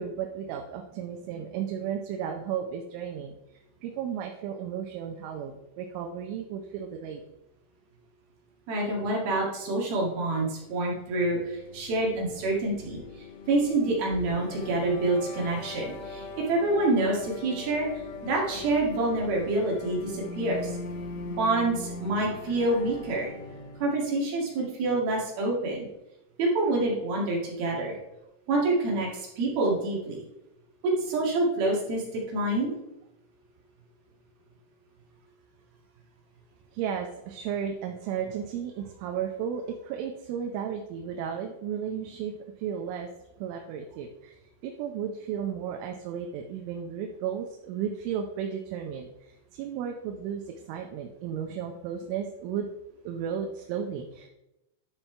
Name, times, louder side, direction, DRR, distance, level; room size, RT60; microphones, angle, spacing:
voice 1, 0.0-7.2 36.7-43.1 43.4-50.4 50.7-52.7 53.0-54.3, right 8 dB, 80° right, 3 dB, 3.1 m, -34 dB
voice 2, 8.7-13.0 13.5-17.9 18.2-20.7 21.4-23.3 23.8-25.9 26.4-27.9 28.5-30.2 30.8-32.7, right 2 dB, 55° right, -3 dB, 3.5 m, -27 dB
sound 1, 11.0-24.0, left 3 dB, 85° left, 3.9 m, -41 dB
12.0 x 5.8 x 4.5 m, 0.90 s
omnidirectional pair, 5.9 m